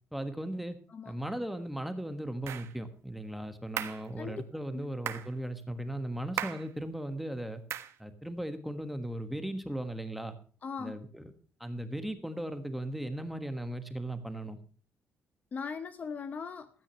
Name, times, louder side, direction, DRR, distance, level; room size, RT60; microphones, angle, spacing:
voice 1, 0.1-0.8 1.0-7.6 8.0-10.3 10.8-11.3 11.6-14.6, right 1 dB, ahead, 1.4 m, -37 dB
sound 1, 2.5-2.7 3.8-4.1 5.1-5.3 6.4-6.7 7.7-8.0, right 10 dB, 65° right, 1.3 m, -36 dB
voice 2, 10.6-11.0 15.5-16.7, left 5 dB, 35° left, 0.8 m, -39 dB
16.0 x 14.0 x 3.0 m
cardioid pair, 175°, 5 cm